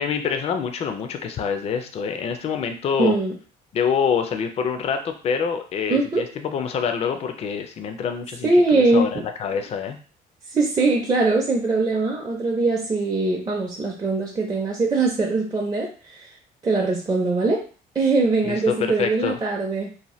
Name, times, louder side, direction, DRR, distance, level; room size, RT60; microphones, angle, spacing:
voice 1, 0.0-3.1 3.7-10.0 18.4-19.4, left 6 dB, 40° left, 6 dB, 0.4 m, -26 dB
voice 2, 3.0-3.3 5.9-6.3 8.4-9.2 10.5-16.3 16.6-17.6 18.0-19.9, right 3 dB, 20° right, -2 dB, 0.5 m, -21 dB
2.7 x 2.1 x 3.0 m, 0.38 s
cardioid pair, 110°, 17 cm